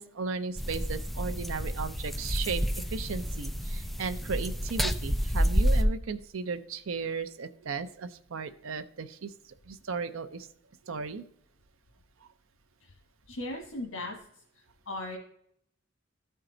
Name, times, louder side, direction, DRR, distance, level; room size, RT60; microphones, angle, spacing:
voice 1, 0.0-9.3 9.7-10.5 10.9-11.2, right 5 dB, 90° right, 10 dB, 0.6 m, -35 dB
sound 1, 0.6-5.8, equal, ahead, 0.4 m, -29 dB
voice 2, 13.3-15.2, left 1 dB, 90° left, 0 dB, 1.2 m, -38 dB
13.0 x 4.6 x 3.8 m, 0.70 s
head